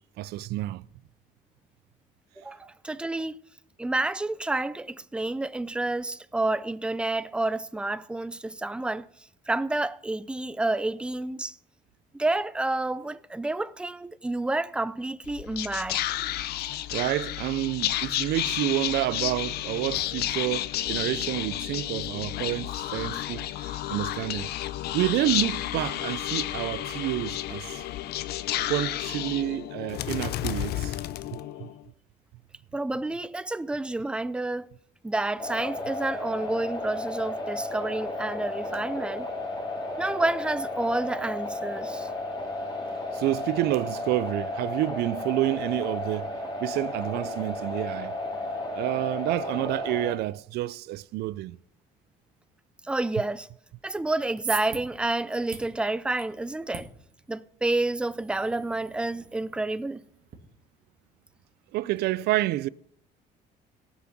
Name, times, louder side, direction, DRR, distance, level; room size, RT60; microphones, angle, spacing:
voice 1, 0.2-0.8 16.9-24.5 24.9-27.9 28.7-30.9 31.3-31.7 43.1-46.3 46.6-48.1 48.7-51.6 61.7-62.7, right 16 dB, 75° right, 0.4 m, -29 dB
voice 2, 2.4-3.4 3.8-9.1 9.5-11.6 12.1-16.1 32.7-34.7 35.0-39.3 40.0-42.1 52.8-53.5 53.8-56.9 57.3-60.0, right 2 dB, 5° right, 0.4 m, -29 dB
Whispering, 15.2-31.8, left 13 dB, 70° left, 0.6 m, -31 dB
sound 1, 35.4-50.1, left 2 dB, 25° left, 3.6 m, -33 dB
sound 2, 54.0-60.4, right 6 dB, 55° right, 2.1 m, -42 dB
17.5 x 6.1 x 5.9 m
cardioid pair, 110°, 17 cm